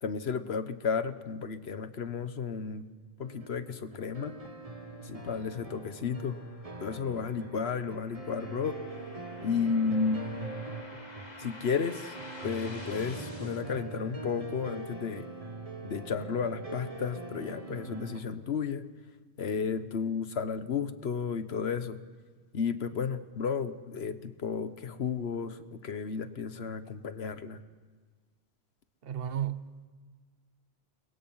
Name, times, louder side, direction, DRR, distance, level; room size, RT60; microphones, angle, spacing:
voice 1, 0.0-2.9 3.2-4.4 5.0-6.4 6.8-8.8 9.4-10.2 11.4-12.2 12.4-15.3 15.8-18.9 19.4-22.0 22.5-27.6, left 6 dB, 75° left, 12 dB, 1.3 m, -33 dB
sound 1, 3.2-18.2, right 3 dB, 35° right, 1.6 m, -43 dB
sound 2, 5.8-13.6, left 2 dB, 40° left, 2.4 m, -50 dB
voice 2, 29.0-29.9, right 10 dB, 65° right, 12 dB, 1.1 m, -34 dB
29.0 x 22.0 x 5.6 m, 1.5 s
omnidirectional pair, 1.1 m